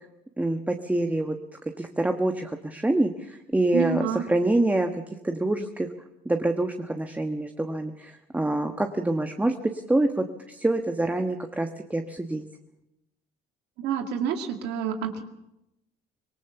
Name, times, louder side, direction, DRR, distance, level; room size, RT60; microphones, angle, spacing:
voice 1, 0.4-1.4 1.8-4.9 5.2-5.9 6.2-12.4, right 2 dB, 10° right, 5 dB, 1.3 m, -26 dB
voice 2, 3.7-4.2 13.8-15.2, right 7 dB, 90° right, 5 dB, 2.4 m, -28 dB
25.5 x 19.0 x 7.1 m, 0.89 s
cardioid pair, 110°, 17 cm